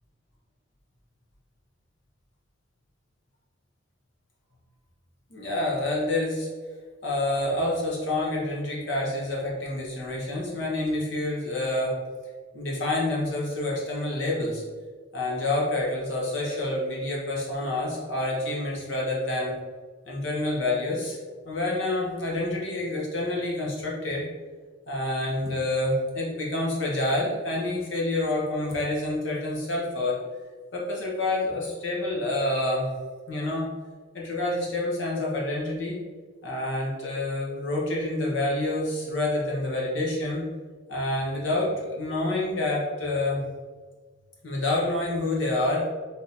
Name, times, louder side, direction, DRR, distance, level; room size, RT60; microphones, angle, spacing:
voice 1, 5.3-6.5 7.0-12.0 12.5-14.6 15.1-19.5 20.0-21.2 21.4-24.3 24.9-30.2 30.7-32.9 33.3-33.7 34.1-36.0 36.4-40.4 40.9-43.4 44.4-45.9, left 2 dB, 65° left, -3 dB, 1.2 m, -28 dB
3.6 x 2.9 x 4.1 m, 1.4 s
head